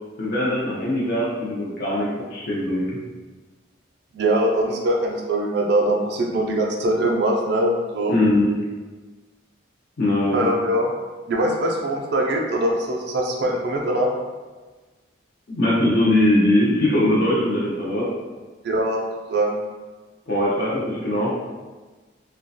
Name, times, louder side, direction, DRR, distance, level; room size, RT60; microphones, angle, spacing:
voice 1, 0.2-2.8 8.1-8.5 10.0-10.5 15.5-18.1 20.3-21.3, left 1 dB, 50° left, -7 dB, 0.5 m, -21 dB
voice 2, 4.1-8.1 10.3-10.9 11.3-14.1 18.6-19.0 19.3-19.6, right 1 dB, 55° right, -1 dB, 0.3 m, -22 dB
2.3 x 2.1 x 2.6 m, 1.3 s
head